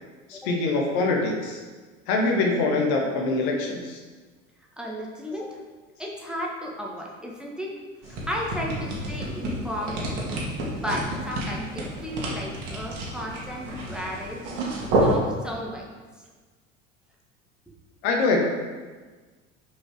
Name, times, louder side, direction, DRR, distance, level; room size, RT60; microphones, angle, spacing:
voice 1, 0.3-1.6 2.1-4.0 18.0-18.4, left 3 dB, 55° left, 1 dB, 1.2 m, -24 dB
voice 2, 4.8-5.6 6.0-7.7 8.1-10.0 10.7-14.4 15.0-15.8, equal, ahead, -3 dB, 1.4 m, -34 dB
sound 1, 8.0-15.1, right 1 dB, 60° right, 2.0 m, -29 dB
6.2 x 4.9 x 4.8 m, 1.4 s
figure-of-eight pair, 65°, 39 cm